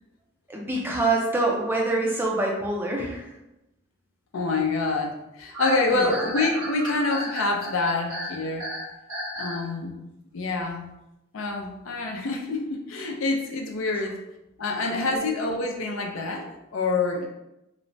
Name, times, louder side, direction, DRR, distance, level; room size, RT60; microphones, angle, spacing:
voice 1, 0.5-3.2 5.9-6.1 15.1-15.3, right 2 dB, 10° right, -1 dB, 0.3 m, -25 dB
voice 2, 4.3-8.7 9.4-10.0 10.3-10.9 11.3-14.2 14.6-17.3, left 3 dB, 75° left, 2 dB, 0.4 m, -27 dB
sound 1, 5.5-9.6, equal, 85° right, 1.2 m, -33 dB
3.0 x 2.1 x 2.6 m, 0.92 s
head